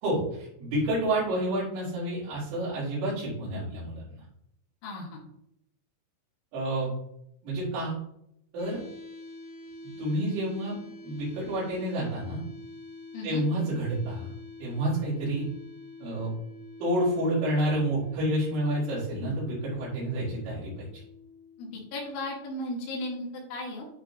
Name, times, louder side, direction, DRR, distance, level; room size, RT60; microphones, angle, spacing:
voice 1, 0.0-4.2 6.5-6.9 7.4-7.9 8.5-8.8 10.0-10.7 11.0-12.4 13.2-14.3 14.6-15.5 16.0-16.3 16.8-20.9, right 1 dB, 70° right, -11 dB, 6.0 m, -29 dB
voice 2, 4.8-5.2 13.1-13.4 21.6-23.8, left 1 dB, 70° left, -2 dB, 4.8 m, -35 dB
sound 1, 8.6-22.5, left 2 dB, 35° left, 2.5 m, -47 dB
12.0 x 4.5 x 3.8 m, 0.76 s
omnidirectional pair, 5.7 m